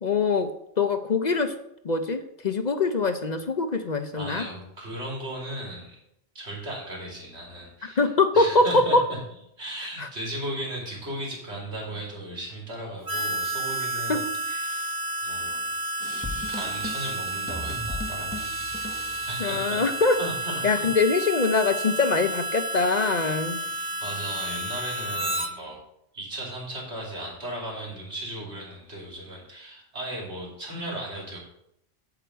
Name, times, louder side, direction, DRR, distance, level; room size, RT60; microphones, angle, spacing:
voice 1, 0.0-0.5 0.8-1.5 1.8-4.5 8.0-9.0 10.0-10.1 14.1-14.2 19.4-20.2 20.6-23.6, left 3 dB, 45° left, 8 dB, 0.7 m, -23 dB
voice 2, 4.2-6.0 6.4-9.2 9.6-15.8 16.5-18.8 19.3-19.8 20.2-20.9 23.6-25.8 26.1-31.4, right 1 dB, 65° right, -2 dB, 3.3 m, -36 dB
Harmonica, 13.1-25.5, right 2 dB, 20° right, 0.8 m, -31 dB
sound 1, 16.0-21.0, left 2 dB, 10° left, 0.9 m, -38 dB
9.8 x 5.0 x 7.9 m, 0.77 s
omnidirectional pair, 1.2 m